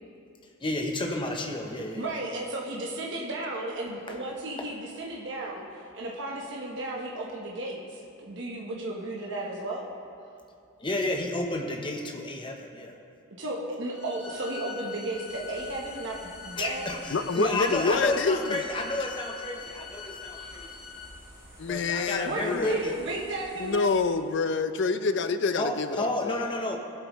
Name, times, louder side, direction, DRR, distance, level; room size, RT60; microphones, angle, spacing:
voice 1, 0.6-2.1 4.1-4.2 4.6-4.7 10.8-13.0 16.6-20.7 21.7-22.9 25.6-26.8, left 1 dB, 20° left, 2 dB, 0.8 m, -31 dB
voice 2, 1.9-5.6 5.9-9.8 13.4-16.2 16.4-16.9 20.3-20.7 22.3-23.9, right 2 dB, 55° right, -2 dB, 1.1 m, -34 dB
sound 1, 13.9-21.1, left 7 dB, 75° left, 1.4 m, -43 dB
sound 2, 15.2-24.1, equal, 5° left, 2.1 m, -52 dB
voice 3, 17.1-18.6 21.6-22.8 23.6-26.4, left 4 dB, 55° left, 10 dB, 0.5 m, -27 dB
17.5 x 8.0 x 3.1 m, 2.4 s
head